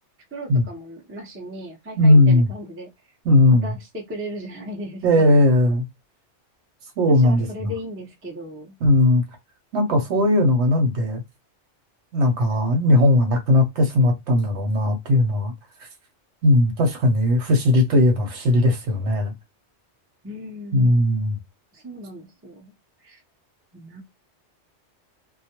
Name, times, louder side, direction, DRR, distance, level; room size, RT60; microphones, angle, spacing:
voice 1, 0.3-2.9 3.5-5.4 7.1-8.8 10.1-10.4 20.2-21.0 21.7-22.7 23.0-23.2 23.7-24.0, equal, 20° right, 0.3 m, -36 dB
voice 2, 2.0-2.5 3.3-3.7 5.0-5.8 7.0-7.7 8.8-9.2 9.7-11.2 12.1-15.5 16.4-19.3 20.7-21.4, left 1 dB, 85° right, 1.0 m, -18 dB
2.2 x 2.1 x 2.8 m
omnidirectional pair, 1.2 m